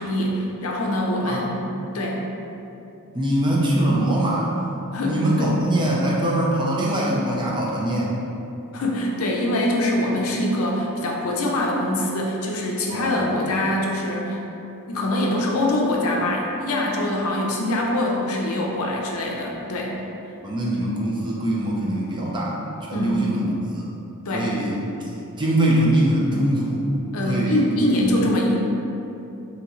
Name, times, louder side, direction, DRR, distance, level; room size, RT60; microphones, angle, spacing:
voice 1, 0.0-1.6 1.9-2.2 4.9-5.6 8.7-14.4 14.9-20.0 22.9-23.3 24.3-24.5 27.1-28.6, left 1 dB, 70° left, -1 dB, 0.5 m, -24 dB
voice 2, 3.1-4.5 5.0-8.1 12.9-13.3 20.4-22.6 22.9-23.8 24.3-24.8 25.4-26.9 27.2-28.0, right 1 dB, 20° right, -4 dB, 0.5 m, -22 dB
2.9 x 2.8 x 3.8 m, 2.9 s
head